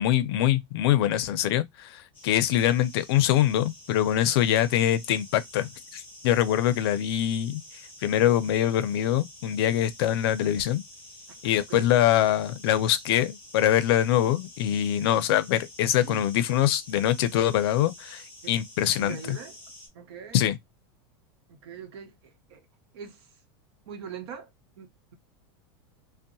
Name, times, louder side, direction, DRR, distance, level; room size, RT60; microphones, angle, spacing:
voice 1, 0.0-7.6 8.0-10.8 11.4-19.4 20.3-20.6, left 11 dB, 70° left, 0.4 m, -24 dB
sound 1, 2.1-19.9, left 1 dB, 10° left, 1.0 m, -49 dB
voice 2, 19.0-19.6 19.9-20.5 21.5-22.7 22.9-23.4 23.9-24.5 24.8-25.1, right 7 dB, 75° right, 0.9 m, -42 dB
2.6 x 2.1 x 2.6 m
supercardioid pair, 155°, 13 cm